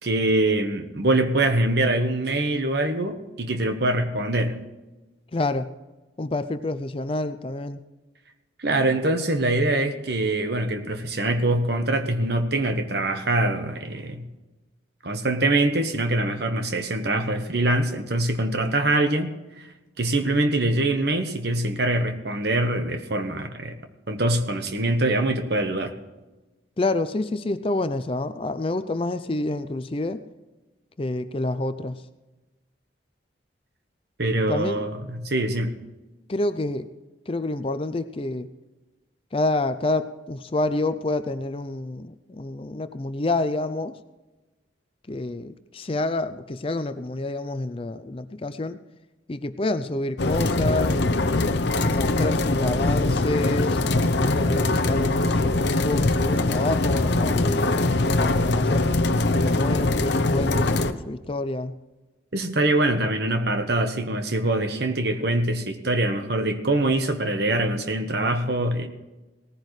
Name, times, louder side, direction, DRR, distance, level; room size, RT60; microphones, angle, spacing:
voice 1, 0.0-4.6 8.6-14.3 15.0-19.3 20.0-23.7 24.1-25.9 34.2-35.7 62.3-68.9, right 2 dB, 55° right, 7 dB, 1.2 m, -24 dB
voice 2, 5.3-5.7 6.2-7.8 26.8-30.2 31.0-32.0 34.5-34.9 36.3-36.9 37.3-38.5 39.3-43.9 45.1-48.8 49.3-51.4 51.8-55.6 55.8-58.9 59.3-61.8, left 2 dB, 30° left, 11 dB, 0.5 m, -28 dB
sound 1, 50.2-60.9, left 2 dB, 60° left, 0.7 m, -22 dB
18.5 x 14.5 x 3.2 m, 1.1 s
head